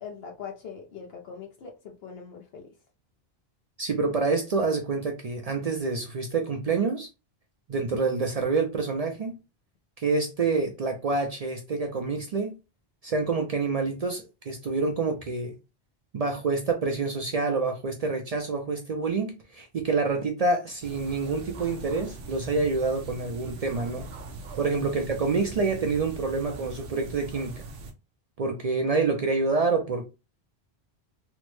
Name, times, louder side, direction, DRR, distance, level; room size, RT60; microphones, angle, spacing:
voice 1, 0.0-2.7 24.6-24.9, left 6 dB, 70° left, 0.8 m, -42 dB
voice 2, 3.8-7.1 7.7-9.3 10.0-12.5 13.0-15.6 16.1-24.1 24.6-27.5 28.4-30.1, right 4 dB, 50° right, 0.4 m, -27 dB
sound 1, 20.8-27.9, right 2 dB, 75° right, 0.9 m, -41 dB
3.3 x 2.1 x 3.0 m
omnidirectional pair, 1.1 m